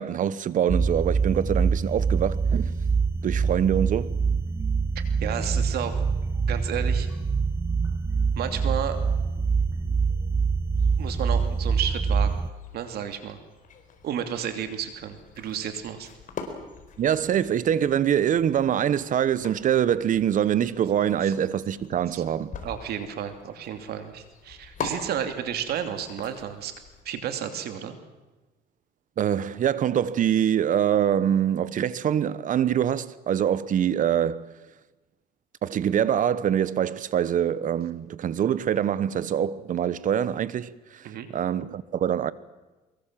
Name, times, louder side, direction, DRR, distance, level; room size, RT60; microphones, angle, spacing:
voice 1, 0.0-2.7 3.2-4.1 17.0-22.5 29.2-34.5 35.6-42.3, right 9 dB, 50° right, 1.1 m, -24 dB
sound 1, 0.7-12.5, right 5 dB, 15° right, 0.8 m, -25 dB
voice 2, 4.9-6.1 6.5-7.1 8.4-9.0 11.0-12.4 12.7-13.4 14.0-16.1 21.2-21.3 22.1-22.2 22.6-28.0 41.0-41.3, right 9 dB, 70° right, 2.9 m, -32 dB
sound 2, 10.7-27.0, left 5 dB, 50° left, 4.4 m, -44 dB
24.0 x 22.0 x 7.6 m
cardioid pair, 110°, 17 cm